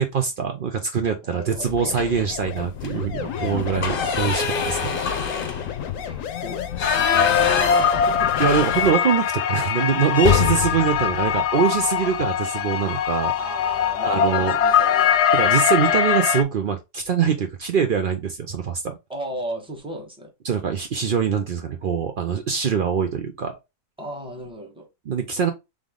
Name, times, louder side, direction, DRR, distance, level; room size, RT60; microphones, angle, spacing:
voice 1, 0.0-4.9 8.4-13.3 14.0-14.5 15.3-19.0 20.4-23.6 25.1-25.5, right 7 dB, 80° right, 0.4 m, -23 dB
voice 2, 1.2-2.2 3.8-4.2 6.0-6.6 6.9-8.4 13.3-15.2 19.1-20.3 24.0-24.9, right 1 dB, 5° right, 1.0 m, -35 dB
sound 1, 1.6-8.9, left 9 dB, 65° left, 0.9 m, -31 dB
sound 2, 1.9-2.4 2.7-2.9 3.3-9.3 9.6-9.7 10.1-12.3 13.6-13.9 14.2-14.4 14.7-15.3, left 7 dB, 45° left, 0.8 m, -26 dB
sound 3, 6.8-16.4, left 8 dB, 85° left, 1.2 m, -22 dB
3.7 x 3.5 x 3.6 m
omnidirectional pair, 1.7 m